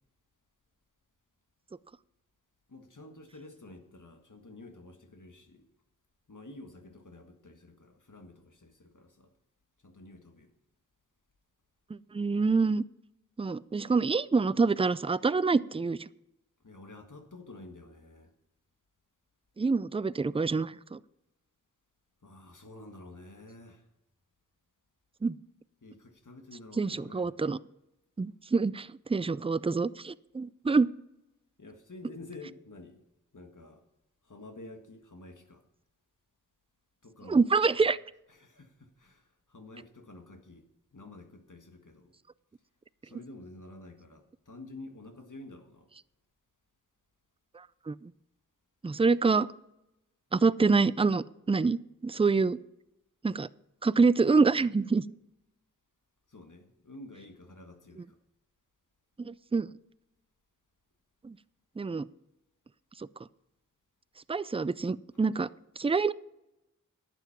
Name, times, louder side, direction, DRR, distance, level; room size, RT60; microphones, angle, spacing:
voice 1, 2.7-5.7 6.3-9.3 9.8-10.5 16.6-18.3 22.2-23.8 25.8-27.3 31.6-33.0 33.3-33.8 34.2-35.6 37.0-37.5 37.7-37.8 38.3-40.6 40.9-42.1 43.0-45.9 56.3-58.2, left 2 dB, 70° left, 1.6 m, -49 dB
voice 2, 12.1-12.8 13.4-16.0 19.6-21.0 25.2-25.3 26.8-27.6 28.2-30.9 37.3-38.0 47.9-48.1 48.8-49.5 50.3-52.6 53.2-53.5 53.8-55.0 59.2-59.7 61.2-61.3 61.8-62.0 64.3-65.5 65.8-66.1, right 4 dB, 20° right, 0.3 m, -26 dB
11.5 x 8.0 x 5.8 m
wide cardioid pair, 50°, 31 cm